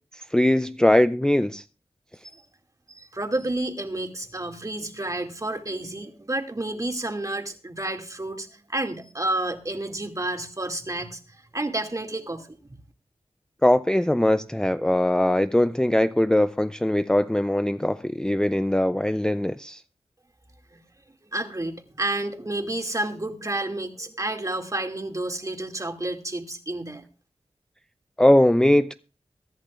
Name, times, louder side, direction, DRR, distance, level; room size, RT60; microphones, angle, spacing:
voice 1, 0.3-1.6 13.6-19.8 28.2-28.9, left 1 dB, 5° left, 0.5 m, -21 dB
voice 2, 2.9-11.2 11.5-12.6 20.7-20.8 21.3-27.0, right 1 dB, 30° right, 2.3 m, -30 dB
23.0 x 10.5 x 2.5 m
cardioid pair, 45°, 11 cm